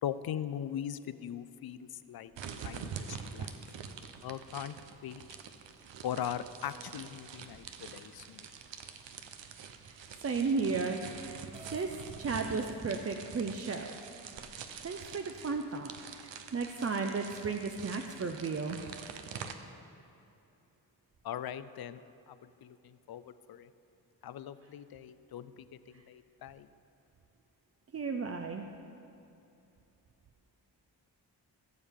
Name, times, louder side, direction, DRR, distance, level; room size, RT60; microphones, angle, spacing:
voice 1, 0.0-2.3 2.6-3.6 4.2-4.8 5.0-5.2 6.0-8.4 21.2-22.0 22.3-22.4 22.6-23.7 24.2-25.7 25.9-26.7, left 10 dB, 55° left, 14 dB, 0.5 m, -40 dB
sound 1, 2.4-19.5, right 7 dB, 70° right, 0.8 m, -46 dB
voice 2, 10.2-11.4 11.7-11.9 12.2-14.0 14.8-18.8 25.9-26.0 27.9-28.6, right 4 dB, 30° right, 4 dB, 0.6 m, -34 dB
sound 2, 11.5-11.9 12.9-13.0 13.6-13.7 14.3-15.0, right 1 dB, 10° right, 1.4 m, -54 dB
16.5 x 7.2 x 3.6 m, 2.8 s
supercardioid pair, 45°, 46 cm